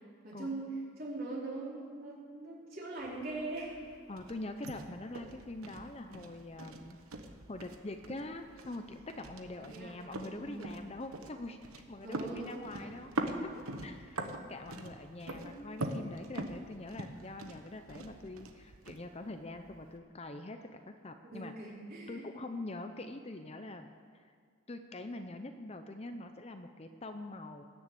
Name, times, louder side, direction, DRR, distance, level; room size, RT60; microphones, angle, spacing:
voice 1, 0.2-0.7 1.0-3.8 9.6-10.5 12.0-12.9 15.4-15.6 21.3-22.3, right 2 dB, 45° right, -5 dB, 4.2 m, -42 dB
sound 1, 3.0-20.0, right 2 dB, 90° right, 1.2 m, -44 dB
voice 2, 4.1-7.0 7.5-11.6 11.9-13.1 13.4-14.2 14.5-21.5 22.1-23.9 24.2-24.3 24.7-27.6, left 2 dB, 30° left, 7 dB, 0.6 m, -44 dB
20.5 x 7.0 x 8.6 m, 2.1 s
head